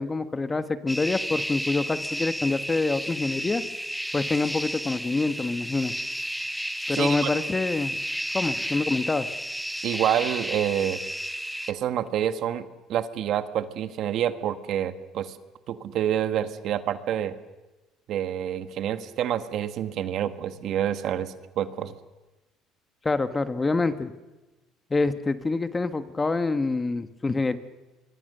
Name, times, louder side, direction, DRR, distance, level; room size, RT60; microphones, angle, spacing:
voice 1, 0.0-3.6 4.1-5.9 6.9-8.0 8.3-9.3 23.0-24.1 24.9-27.6, left 3 dB, 20° left, 10 dB, 1.3 m, -26 dB
sound 1, 0.9-11.7, equal, ahead, 0.9 m, -32 dB
voice 2, 6.9-7.3 9.8-11.0 11.7-15.3 15.7-17.3 18.1-21.9, right 10 dB, 60° right, 10 dB, 1.5 m, -28 dB
25.0 x 23.0 x 6.7 m, 1.1 s
cardioid pair, 105°, 0 cm